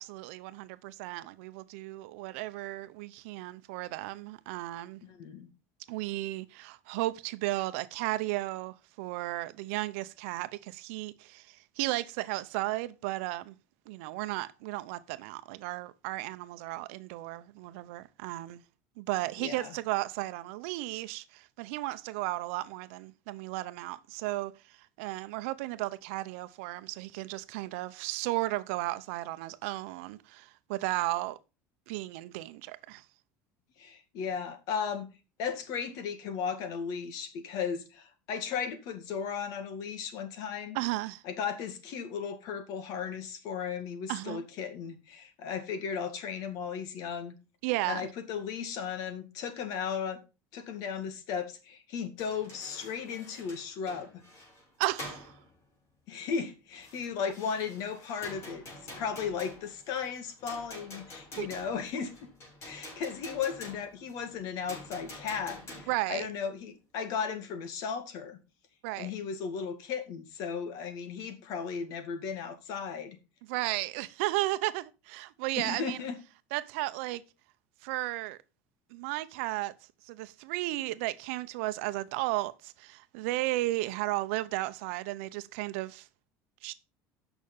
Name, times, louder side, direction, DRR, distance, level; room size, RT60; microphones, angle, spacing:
voice 1, 0.0-5.0 5.9-13.6 13.9-18.6 19.0-31.4 31.9-33.0 40.7-41.2 44.1-44.4 47.6-48.1 54.8-55.3 61.4-61.5 65.9-66.3 68.8-69.1 73.5-76.0 76.5-77.2 77.8-78.4 78.9-79.7 80.0-86.1 86.6-86.7, right 18 dB, 80° right, 0.7 m, -34 dB
voice 2, 5.0-5.5 19.4-19.7 33.8-35.1 35.4-40.8 41.2-47.4 47.9-50.2 50.5-54.2 56.1-58.6 59.0-62.1 62.6-68.4 68.9-73.2 75.6-76.2, left 6 dB, 65° left, 2.1 m, -35 dB
sound 1, 52.2-54.7 55.0-55.6 56.8-66.1, left 1 dB, 40° left, 5.8 m, -47 dB
8.6 x 6.0 x 5.4 m
supercardioid pair, 105°, 7 cm